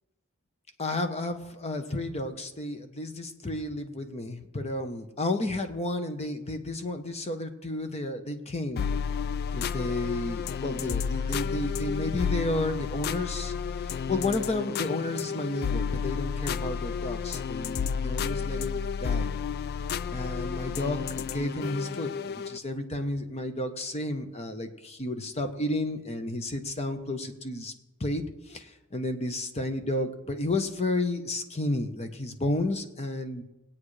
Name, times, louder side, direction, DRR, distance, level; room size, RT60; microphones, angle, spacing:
voice 1, 0.8-8.9 9.5-13.5 14.1-19.3 20.1-27.7 28.0-33.4, left 2 dB, 30° left, 7 dB, 1.0 m, -32 dB
sound 1, 8.8-22.6, left 6 dB, 45° left, 0.3 m, -31 dB
21.0 x 8.6 x 3.3 m, 0.99 s
head